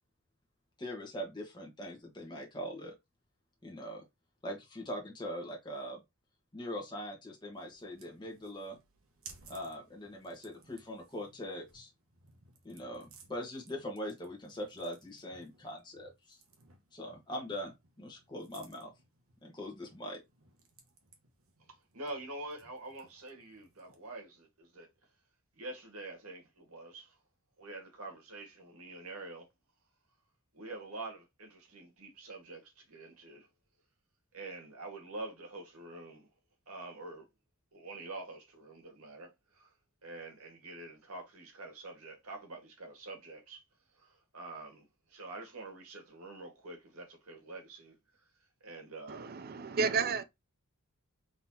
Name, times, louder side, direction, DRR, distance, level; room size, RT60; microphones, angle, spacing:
voice 1, 0.8-2.9 3.6-4.0 4.4-6.0 6.5-8.8 9.5-11.9 12.6-16.4 16.9-18.9 19.4-20.2, equal, 20° left, 1.3 m, -42 dB
sound 1, 7.5-24.2, right 5 dB, 70° right, 1.2 m, -60 dB
voice 2, 21.9-24.9 25.5-27.2 27.6-29.5 30.5-33.5 34.3-36.3 36.7-37.3 37.7-39.7 40.0-43.6 44.0-47.9 48.6-49.3, right 2 dB, 85° right, 1.7 m, -46 dB
voice 3, 49.1-50.2, right 5 dB, 45° right, 0.5 m, -32 dB
3.9 x 3.7 x 2.8 m
head